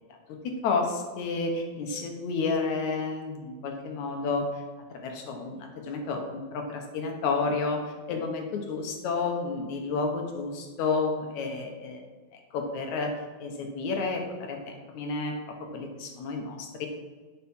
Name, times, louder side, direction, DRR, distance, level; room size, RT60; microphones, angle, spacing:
voice 1, 0.4-4.5 5.0-7.8 8.1-12.0 12.5-13.1 13.4-15.3 15.7-16.9, left 4 dB, 65° left, 3 dB, 2.0 m, -30 dB
11.5 x 5.9 x 5.5 m, 1.4 s
omnidirectional pair, 4.6 m